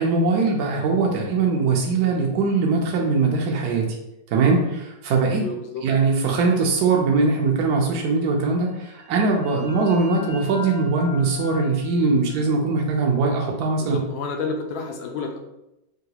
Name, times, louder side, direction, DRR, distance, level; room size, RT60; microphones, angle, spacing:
voice 1, 0.0-3.9 4.3-5.4 5.8-14.0, right 4 dB, 75° right, 0 dB, 0.9 m, -21 dB
voice 2, 5.4-5.8 13.8-15.4, left 4 dB, 85° left, 3 dB, 1.4 m, -30 dB
sound 1, 8.7-14.2, left 1 dB, 60° left, 1.3 m, -43 dB
3.7 x 2.3 x 2.8 m, 0.88 s
omnidirectional pair, 2.1 m